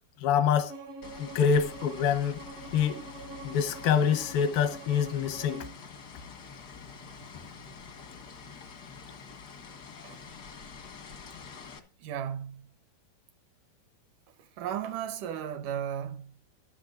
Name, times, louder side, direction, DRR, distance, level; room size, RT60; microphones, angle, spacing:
voice 1, 0.2-0.7 1.2-2.4 2.7-3.0 3.4-5.7, left 7 dB, 85° left, 3.0 m, -26 dB
Bowed string instrument, 0.7-5.8, right 3 dB, 90° right, 7.0 m, -45 dB
sound 1, 1.0-11.8, left 5 dB, 70° left, 0.9 m, -46 dB
voice 2, 12.0-12.6 14.4-16.5, right 9 dB, 75° right, 2.1 m, -35 dB
14.0 x 12.5 x 2.5 m
omnidirectional pair, 4.2 m